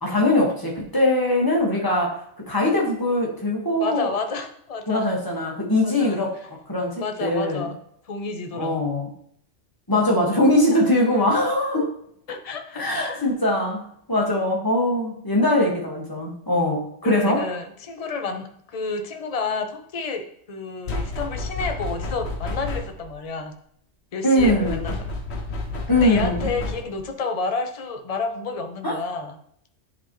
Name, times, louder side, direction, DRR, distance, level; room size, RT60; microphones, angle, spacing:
voice 1, 0.0-4.1 4.9-6.4 6.7-7.7 8.5-9.1 9.9-11.9 12.7-17.4 24.2-24.9 25.9-26.5 28.8-28.9, left 1 dB, 20° left, -3 dB, 1.7 m, -22 dB
voice 2, 3.8-5.1 5.8-6.5 7.0-7.8 8.1-8.8 10.7-10.8 12.3-13.3 17.0-23.6 24.1-25.0 25.9-29.4, left 4 dB, 35° left, 5 dB, 0.7 m, -30 dB
sound 1, 20.9-23.1 24.4-27.1, left 2 dB, 65° left, 1.3 m, -30 dB
10.5 x 4.3 x 3.1 m, 0.67 s
omnidirectional pair, 1.2 m